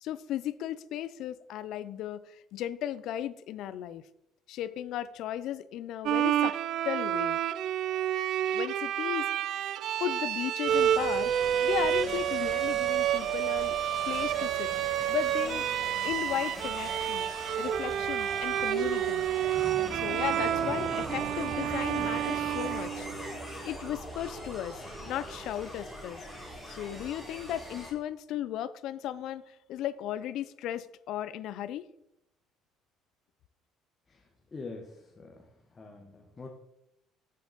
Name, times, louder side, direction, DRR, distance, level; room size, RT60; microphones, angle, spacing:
voice 1, 0.0-4.0 4.5-6.6 6.8-7.4 8.5-9.6 10.0-11.3 11.6-13.8 14.1-14.7 15.1-15.6 16.0-17.3 17.6-19.2 20.0-23.1 23.6-26.2 26.7-29.4 29.7-31.9, left 11 dB, 65° left, 15 dB, 0.4 m, -35 dB
Bowed string instrument, 6.1-23.5, right 11 dB, 60° right, 0.3 m, -29 dB
sound 1, 10.6-27.9, equal, 5° right, 2.4 m, -41 dB
sound 2, 19.3-24.6, right 4 dB, 25° right, 0.6 m, -45 dB
voice 2, 34.5-35.4 35.7-36.5, left 3 dB, 20° left, 2 dB, 0.9 m, -44 dB
7.7 x 7.2 x 3.9 m, 0.83 s
cardioid pair, 145°, 0 cm